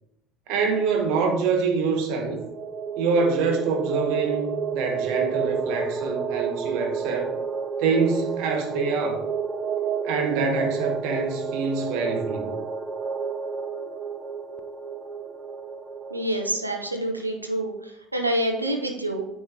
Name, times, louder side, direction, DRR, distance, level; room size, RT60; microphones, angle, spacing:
voice 1, 0.5-2.4 3.0-7.3 7.8-9.2 10.0-12.6, right 4 dB, 60° right, 3 dB, 1.1 m, -25 dB
sound 1, 2.3-16.6, right 6 dB, 20° right, 0.6 m, -30 dB
voice 2, 16.1-19.3, right 1 dB, 90° right, 3 dB, 0.6 m, -27 dB
9.2 x 3.1 x 3.6 m, 0.80 s
figure-of-eight pair, 65°, 0 cm